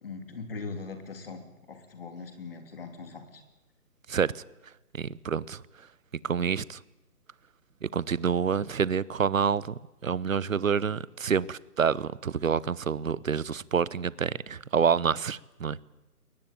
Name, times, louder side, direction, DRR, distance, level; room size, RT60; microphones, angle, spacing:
voice 1, 0.0-3.4, left 4 dB, 35° left, 3.2 m, -41 dB
voice 2, 4.1-4.4 4.9-5.6 6.2-6.8 7.8-9.7 10.0-15.8, right 6 dB, 60° right, 0.9 m, -27 dB
22.0 x 18.5 x 9.2 m
hypercardioid pair, 175°, 46 cm